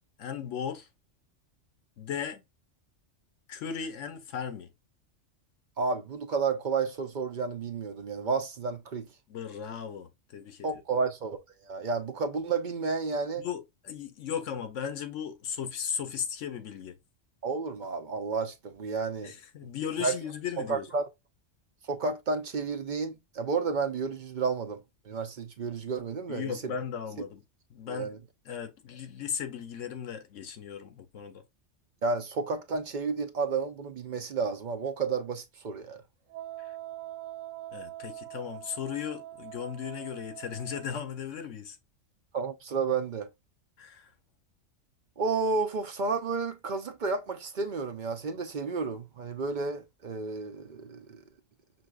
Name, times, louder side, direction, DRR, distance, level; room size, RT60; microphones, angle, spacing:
voice 1, 0.2-0.9 2.0-2.4 3.5-4.7 9.3-10.8 13.4-17.0 19.2-20.9 26.3-27.4 27.7-28.1 28.5-31.4 36.6-36.7 37.7-41.8 43.8-44.1, left 8 dB, 80° left, 1.1 m, -36 dB
voice 2, 5.8-9.1 10.6-11.4 11.7-13.4 17.4-19.3 20.0-20.1 20.7-21.1 21.9-24.8 25.1-26.7 27.9-28.2 32.0-36.0 42.3-43.3 45.2-51.2, right 4 dB, 50° right, 0.6 m, -31 dB
Wind instrument woodwind instrument, 36.3-41.0, right 14 dB, 85° right, 1.0 m, -43 dB
6.1 x 2.7 x 2.3 m
omnidirectional pair, 1.3 m